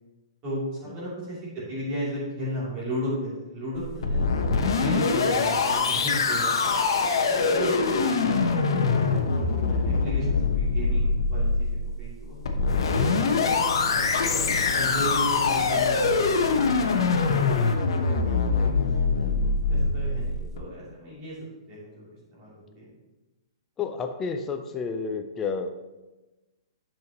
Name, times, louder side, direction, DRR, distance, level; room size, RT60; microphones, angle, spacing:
voice 1, 0.4-4.2 4.8-6.7 7.2-8.3 8.6-12.4 13.0-18.9 19.7-21.4 21.7-22.1 22.3-22.9, equal, 25° right, -8 dB, 2.9 m, -35 dB
sound 1, 3.7-20.6, left 4 dB, 65° left, 1.0 m, -24 dB
sound 2, 12.7-17.8, left 4 dB, 90° left, 0.9 m, -33 dB
voice 2, 23.8-25.7, left 5 dB, 10° left, 5 dB, 0.4 m, -31 dB
10.5 x 5.7 x 3.0 m, 1.1 s
hypercardioid pair, 170°, 3 cm